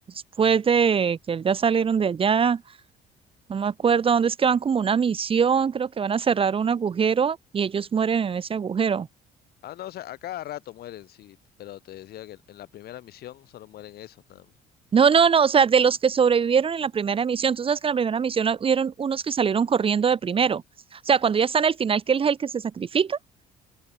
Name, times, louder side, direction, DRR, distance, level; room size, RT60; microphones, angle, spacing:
voice 1, 0.4-2.6 3.5-9.1 14.9-20.6 20.9-23.2, right 6 dB, 35° right, 1.0 m, -22 dB
voice 2, 9.6-14.5, left 13 dB, 65° left, 2.1 m, -40 dB
cardioid pair, 110°, 17 cm